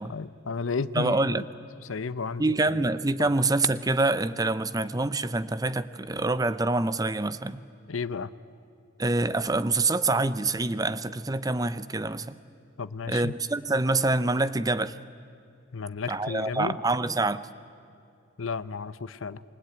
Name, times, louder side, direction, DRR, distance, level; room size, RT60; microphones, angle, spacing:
voice 1, 0.1-1.4 1.8-2.4 3.2-3.3 7.9-8.3 12.8-13.3 15.7-16.8 18.4-19.4, left 4 dB, 75° left, 16 dB, 0.7 m, -33 dB
voice 2, 0.9-1.5 2.4-7.6 9.0-12.3 13.1-15.0 16.1-17.5, right 2 dB, 15° right, 14 dB, 0.6 m, -26 dB
27.5 x 23.0 x 9.0 m, 2.6 s
head